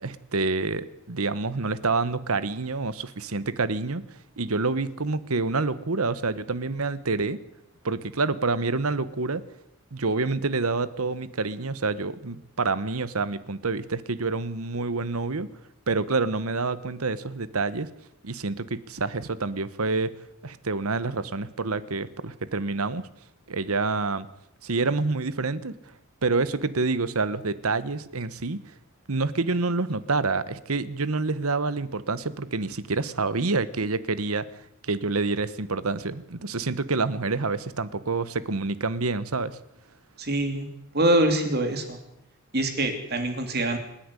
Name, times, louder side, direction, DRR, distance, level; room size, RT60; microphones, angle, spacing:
voice 1, 0.0-4.0 4.4-7.4 7.8-9.4 9.9-15.5 15.9-17.9 18.2-20.1 20.4-23.0 23.5-24.3 24.6-25.7 26.2-28.6 29.1-34.5 34.8-39.6, right 3 dB, 80° right, 16 dB, 1.2 m, -27 dB
voice 2, 40.2-40.7 40.9-42.0 42.5-43.8, right 1 dB, 45° right, 6 dB, 3.2 m, -24 dB
27.5 x 10.5 x 9.8 m, 0.81 s
head